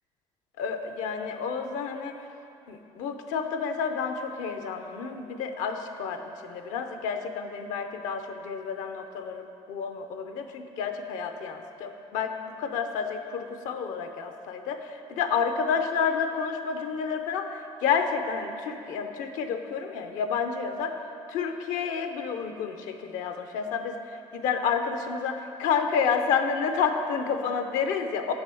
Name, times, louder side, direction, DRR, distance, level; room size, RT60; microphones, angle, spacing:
voice 1, 0.6-2.1 2.7-21.0 21.3-28.3, left 6 dB, 80° left, 7 dB, 0.7 m, -30 dB
8.0 x 6.0 x 6.9 m, 2.7 s
supercardioid pair, 80°, 13 cm